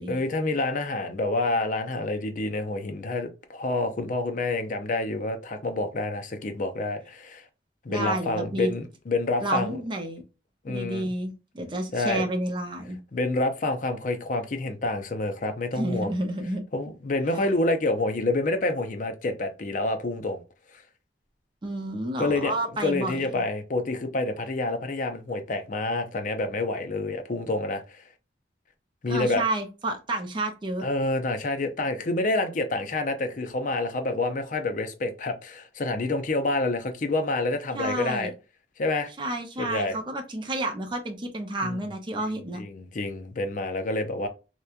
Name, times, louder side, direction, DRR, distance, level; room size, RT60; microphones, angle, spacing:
voice 1, 0.1-7.4 7.8-9.8 10.6-11.1 11.9-12.2 13.1-16.1 16.7-20.4 22.2-22.5 22.8-28.0 29.0-29.4 30.8-38.3 38.8-39.1 39.6-40.0 41.6-41.8 42.5-44.3, left 2 dB, 45° left, 0.5 m, -28 dB
voice 2, 7.9-8.7 9.4-10.2 10.7-13.0 15.7-16.6 21.6-23.4 29.1-30.9 37.7-38.3 39.2-42.6, right 1 dB, 25° right, 0.5 m, -30 dB
2.9 x 2.2 x 2.4 m
head